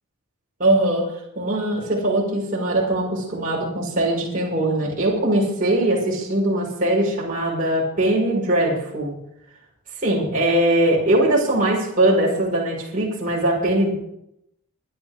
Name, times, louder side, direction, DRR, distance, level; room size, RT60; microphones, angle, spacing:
voice 1, 0.6-1.1 1.4-9.1 10.0-13.9, right 1 dB, 40° right, -5 dB, 5.5 m, -21 dB
24.5 x 11.0 x 3.6 m, 0.78 s
head